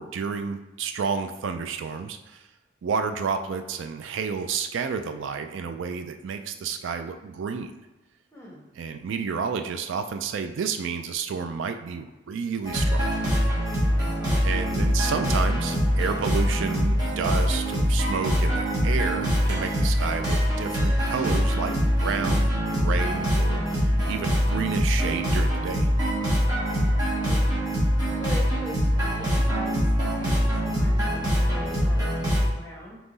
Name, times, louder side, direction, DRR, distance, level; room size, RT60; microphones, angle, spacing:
voice 1, 0.0-2.4 2.8-7.7 8.8-13.1 14.4-21.7 22.0-25.9, right 5 dB, 70° right, 7 dB, 0.3 m, -30 dB
voice 2, 8.3-8.6 13.9-14.5 26.6-27.4 27.8-33.0, equal, 15° left, -3 dB, 1.1 m, -41 dB
sound 1, 12.6-32.5, equal, 20° right, 1.4 m, -24 dB
3.7 x 3.0 x 3.9 m, 1.1 s
head